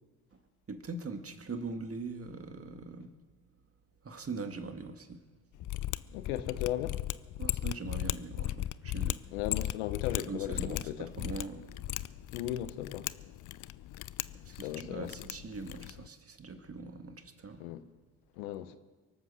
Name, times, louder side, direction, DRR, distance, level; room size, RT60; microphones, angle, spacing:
voice 1, 0.7-3.1 4.0-5.2 7.4-9.2 10.3-11.7 14.4-17.6, right 4 dB, 30° right, 1.9 m, -41 dB
Mechanisms, 5.6-16.1, left 14 dB, 45° left, 0.5 m, -37 dB
voice 2, 6.1-7.0 9.3-11.1 12.3-13.1 14.6-15.1 17.6-17.8 18.4-18.8, left 13 dB, 85° left, 0.9 m, -36 dB
23.5 x 8.3 x 6.3 m
hypercardioid pair, 60°, 43 cm